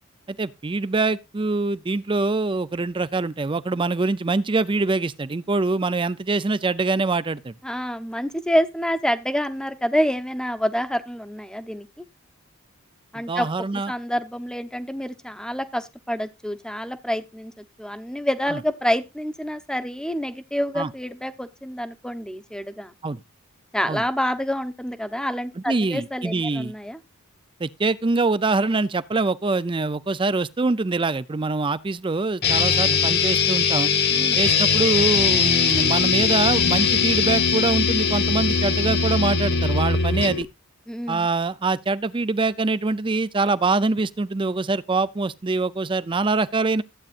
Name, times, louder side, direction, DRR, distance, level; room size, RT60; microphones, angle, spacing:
voice 1, 0.4-7.5 13.2-13.9 18.5-18.6 20.8-20.9 23.0-23.2 23.9-24.0 25.7-26.7 27.6-33.9 34.4-40.5 41.1-46.8, right 3 dB, 25° right, 0.5 m, -24 dB
voice 2, 7.6-11.9 13.1-22.9 23.7-27.0 34.1-34.4 40.9-41.3, equal, 5° left, 0.9 m, -27 dB
sound 1, 32.4-40.4, left 6 dB, 50° left, 1.4 m, -20 dB
14.5 x 8.8 x 2.5 m
head